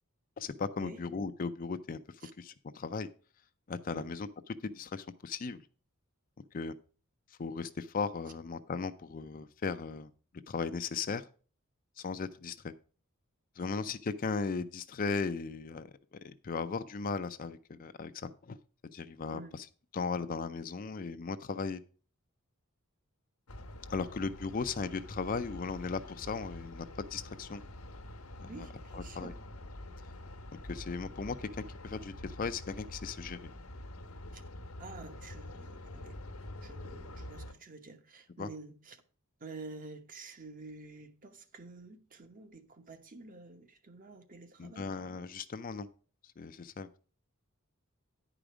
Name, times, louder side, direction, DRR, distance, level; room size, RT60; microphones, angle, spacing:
voice 1, 0.4-2.0 2.4-3.1 3.7-4.3 4.6-5.6 6.5-6.7 7.4-10.1 10.5-11.2 12.0-12.7 13.6-15.9 16.2-18.6 18.9-19.7 19.9-21.8 23.9-27.6 28.4-28.7 28.9-29.3 30.7-33.4 38.4-38.5 44.6-45.9 46.4-46.9, left 4 dB, 40° left, 0.4 m, -37 dB
Chinatown Sidewalk, 23.5-37.5, left 1 dB, 85° left, 1.1 m, -46 dB
voice 2, 28.4-29.4 34.3-34.4 34.8-36.2 36.6-39.0 39.4-44.9, right 3 dB, 40° right, 1.0 m, -49 dB
10.0 x 5.0 x 6.0 m
head